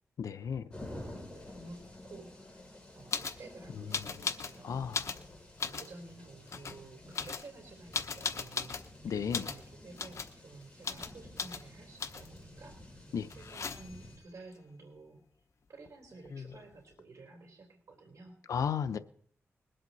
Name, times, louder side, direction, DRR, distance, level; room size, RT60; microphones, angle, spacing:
voice 1, 0.2-0.6 3.7-4.2 4.6-5.1 9.0-9.5 13.1-13.3 18.5-19.0, left 7 dB, 85° left, 12 dB, 0.7 m, -34 dB
sound 1, 0.7-14.2, left 1 dB, 15° left, 6.3 m, -51 dB
voice 2, 0.9-2.6 2.9-5.1 5.6-12.8 13.4-15.2 15.7-18.4, right 3 dB, 70° right, 1 dB, 3.5 m, -52 dB
sound 2, 3.1-3.4 3.9-4.6 4.9-5.9 6.5-6.8 7.1-8.9 9.3-9.6 10.0-10.3 10.8-11.1 11.4-11.6 12.0-12.4 13.3-14.1 15.9-16.0 16.1-16.7, left 5 dB, 65° left, 1.1 m, -37 dB
22.0 x 7.9 x 4.1 m, 0.64 s
cardioid pair, 80°, 5 cm